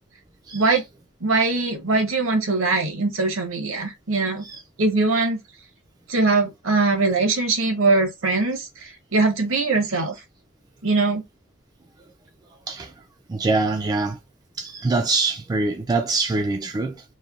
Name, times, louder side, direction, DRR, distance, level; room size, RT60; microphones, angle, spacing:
voice 1, 0.5-0.8 1.2-4.4 4.8-5.4 6.1-10.1 10.8-11.2, right 3 dB, 70° right, 0.9 m, -21 dB
voice 2, 13.3-14.2 14.6-17.0, right 3 dB, 20° right, 0.3 m, -24 dB
3.1 x 2.2 x 2.3 m
head